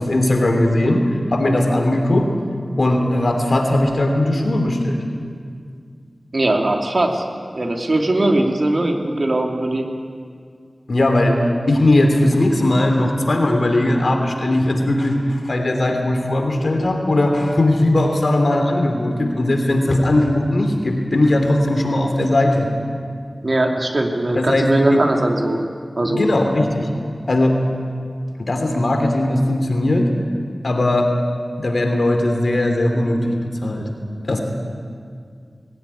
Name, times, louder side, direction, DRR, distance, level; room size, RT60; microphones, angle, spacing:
voice 1, 0.0-2.3 2.8-5.0 10.9-11.4 11.7-22.7 24.3-25.0 26.1-26.9 27.3-27.6 28.4-30.1 30.6-31.1 31.6-33.9 34.2-34.4, left 1 dB, 75° left, 4 dB, 3.1 m, -18 dB
voice 2, 6.3-7.2 7.5-9.9 23.4-25.7 26.0-26.3, right 1 dB, 60° right, 3 dB, 2.5 m, -20 dB
20.0 x 16.5 x 9.9 m, 2.1 s
wide cardioid pair, 50°, 0 cm